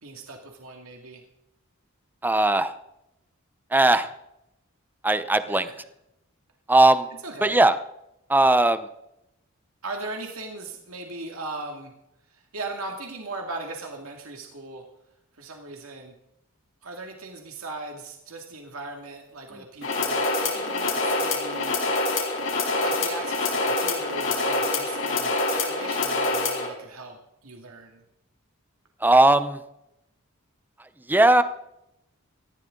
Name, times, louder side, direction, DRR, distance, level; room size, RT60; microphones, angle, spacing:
voice 1, 0.0-1.2 5.5-5.7 7.2-7.6 9.8-11.9 12.3-14.8 15.4-16.1 16.8-21.8 22.8-28.0, right 2 dB, 75° right, 2 dB, 2.3 m, -38 dB
voice 2, 2.2-2.7 3.7-4.1 5.0-5.7 6.7-7.1 7.4-7.7 8.3-8.9 29.0-29.6 31.1-31.4, right 2 dB, 10° right, 12 dB, 0.7 m, -18 dB
sound 1, 19.8-26.7, left 2 dB, 65° left, 4.9 m, -26 dB
19.0 x 14.5 x 3.8 m, 0.84 s
head